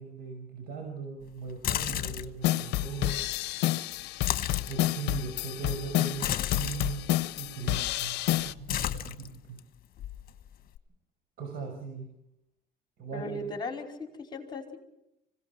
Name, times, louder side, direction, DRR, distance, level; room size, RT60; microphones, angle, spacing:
voice 1, 0.0-3.2 4.7-7.0 7.3-9.6 11.4-12.1 13.0-13.4, right 5 dB, 65° right, 3 dB, 5.8 m, -39 dB
sound 1, 1.5-2.4 4.1-4.8 6.2-6.9 7.7-8.1 8.4-9.6 10.0-10.8, left 11 dB, 60° left, 1.2 m, -32 dB
sound 2, 2.4-8.5, left 16 dB, 85° left, 0.7 m, -29 dB
voice 2, 13.1-14.8, left 2 dB, 25° left, 3 dB, 4.9 m, -37 dB
25.5 x 17.5 x 6.1 m, 0.82 s
cardioid pair, 110°, 17 cm